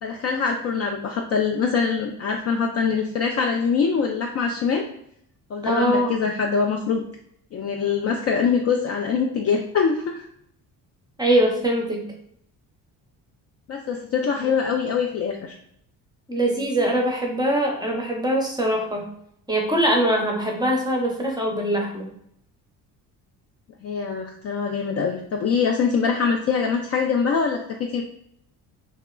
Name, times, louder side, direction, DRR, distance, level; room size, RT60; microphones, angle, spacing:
voice 1, 0.0-4.8 5.5-7.0 7.5-10.3 13.7-15.5 23.8-28.0, left 5 dB, 35° left, 1 dB, 0.4 m, -23 dB
voice 2, 5.6-6.1 11.2-12.0 16.3-19.0 19.5-22.1, right 1 dB, 10° right, 0 dB, 0.7 m, -22 dB
2.9 x 2.1 x 2.2 m, 0.70 s
hypercardioid pair, 50°, 48 cm